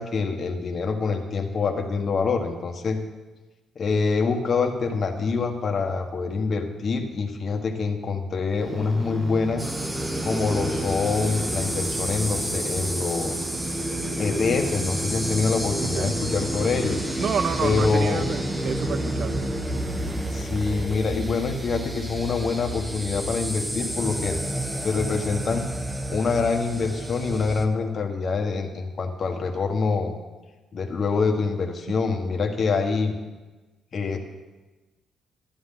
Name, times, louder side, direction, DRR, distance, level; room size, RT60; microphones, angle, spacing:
voice 1, 0.0-3.0 3.7-9.6 10.2-13.4 14.2-17.0 17.6-18.3 20.3-24.4 24.8-25.7 26.1-30.1 30.7-33.2 33.9-34.2, left 4 dB, 45° left, 3 dB, 1.4 m, -25 dB
sound 1, 8.5-21.4, right 2 dB, 30° right, 1.7 m, -35 dB
sound 2, 9.6-27.6, right 1 dB, 15° right, 1.1 m, -30 dB
voice 2, 15.8-16.1 17.1-18.4 18.6-19.4, right 6 dB, 60° right, 12 dB, 0.7 m, -28 dB
11.5 x 11.0 x 3.8 m, 1.2 s
cardioid pair, 90°, 0 cm